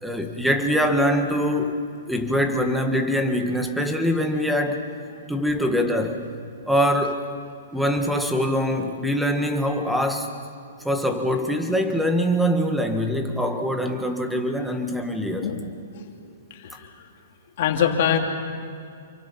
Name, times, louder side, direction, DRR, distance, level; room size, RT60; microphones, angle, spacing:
voice 1, 0.0-1.7 2.1-4.8 5.3-6.2 6.7-7.2 7.7-10.3 10.8-15.5, equal, ahead, 5 dB, 1.7 m, -23 dB
voice 2, 16.5-17.1 17.6-18.2, left 9 dB, 50° left, 3 dB, 2.8 m, -24 dB
28.0 x 24.0 x 5.8 m, 2.4 s
hypercardioid pair, 155°, 0 cm